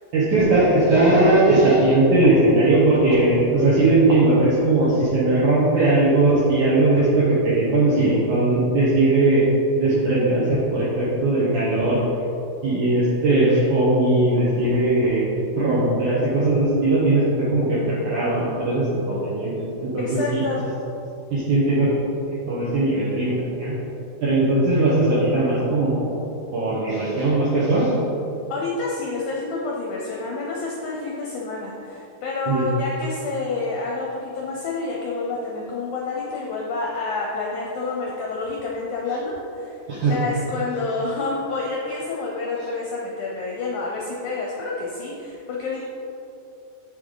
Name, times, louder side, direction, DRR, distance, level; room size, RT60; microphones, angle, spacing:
voice 1, 0.1-9.4 9.8-12.0 12.6-15.2 15.6-20.4 21.3-21.9 22.5-23.7 24.2-26.1 26.5-27.9 32.5-32.7 39.9-40.1, right 2 dB, 65° right, -8 dB, 2.3 m, -19 dB
voice 2, 20.0-20.7 28.5-45.8, left 3 dB, 75° left, -2 dB, 1.8 m, -28 dB
8.0 x 6.9 x 3.8 m, 2.9 s
omnidirectional pair, 4.2 m